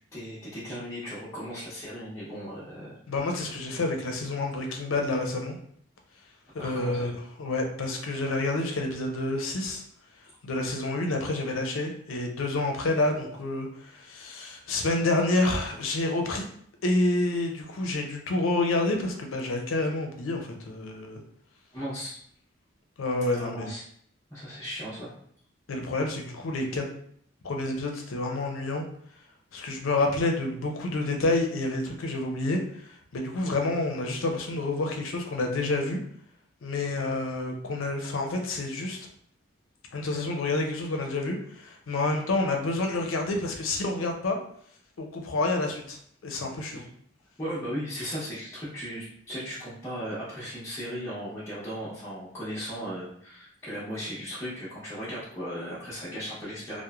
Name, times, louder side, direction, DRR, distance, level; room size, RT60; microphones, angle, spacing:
voice 1, 0.1-3.0 3.3-3.4 6.6-7.1 21.7-22.2 23.4-23.8 24.3-25.1 46.7-46.9 47.4-56.8, equal, 15° left, -12 dB, 0.7 m, -37 dB
voice 2, 3.1-5.6 6.5-7.1 7.4-9.8 10.4-16.5 16.8-21.2 23.0-23.7 25.7-26.9 27.4-28.8 29.5-36.0 36.6-39.1 39.9-44.4 45.0-46.8, left 2 dB, 85° left, 3 dB, 0.5 m, -28 dB
3.0 x 2.0 x 2.3 m, 0.63 s
head